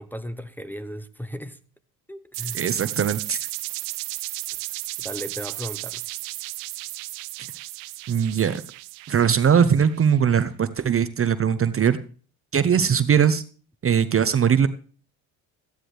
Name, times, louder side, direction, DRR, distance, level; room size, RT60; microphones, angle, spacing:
voice 1, 0.0-1.6 2.1-2.6 5.0-6.1, equal, 5° left, 0.9 m, -36 dB
sound 1, 2.3-10.1, right 21 dB, 85° right, 0.6 m, -34 dB
voice 2, 2.5-3.4 8.1-8.6 9.1-12.0 12.5-13.4 13.8-14.7, right 7 dB, 30° right, 0.7 m, -20 dB
14.5 x 10.0 x 3.3 m
supercardioid pair, 65°, 43 cm